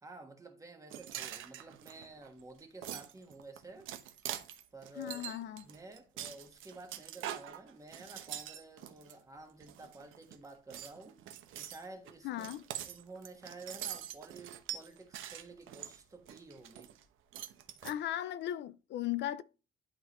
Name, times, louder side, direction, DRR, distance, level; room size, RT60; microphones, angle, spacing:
voice 1, 0.0-3.9 4.7-5.3 5.6-11.2 11.6-16.9, right 2 dB, 15° right, 1.3 m, -51 dB
sound 1, 0.9-9.1 9.6-10.4 10.7-17.0 17.3-17.9, right 11 dB, 75° right, 1.0 m, -44 dB
voice 2, 5.0-5.6 12.2-12.6 17.8-19.4, left 12 dB, 60° left, 0.4 m, -37 dB
11.5 x 3.8 x 3.0 m
cardioid pair, 160°, 20 cm